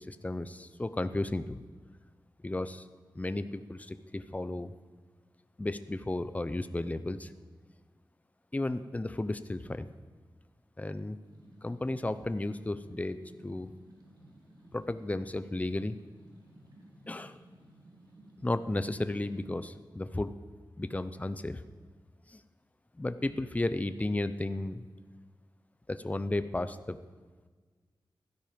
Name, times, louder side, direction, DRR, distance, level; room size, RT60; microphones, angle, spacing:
voice 1, 0.1-1.6 2.4-2.8 3.2-4.7 5.6-7.3 8.5-9.9 10.8-11.2 11.6-13.2 13.4-13.7 14.7-16.0 17.1-17.4 18.4-20.3 20.8-21.6 22.3-22.4 23.0-24.8 25.9-27.0, left 2 dB, 20° left, 12 dB, 0.7 m, -33 dB
sound 1, 11.2-19.5, right 1 dB, 55° right, 3.1 m, -56 dB
16.0 x 12.5 x 5.2 m, 1.5 s
wide cardioid pair, 105°, 8 cm